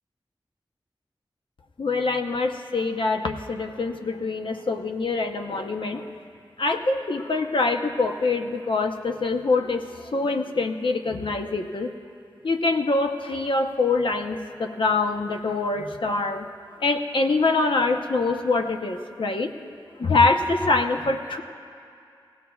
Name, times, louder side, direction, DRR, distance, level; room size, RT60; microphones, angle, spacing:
voice 1, 1.8-6.1 6.6-11.9 12.4-16.5 16.8-19.5 20.0-21.4, left 3 dB, 65° left, 4 dB, 0.8 m, -24 dB
20.5 x 16.5 x 2.4 m, 2.4 s
wide cardioid pair, 60°, 9 cm